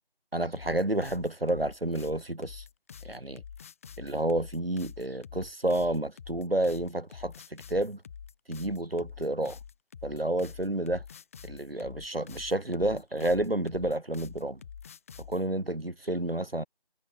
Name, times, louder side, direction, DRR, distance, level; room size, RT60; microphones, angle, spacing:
voice 1, 0.3-2.6 3.0-3.4 4.0-8.0 8.5-9.6 10.0-11.0 11.4-14.6 15.3-16.7, right 1 dB, 70° right, 7.4 m, -30 dB
sound 1, 0.5-15.4, left 7 dB, 15° left, 7.5 m, -46 dB
figure-of-eight pair, 170°, 30 cm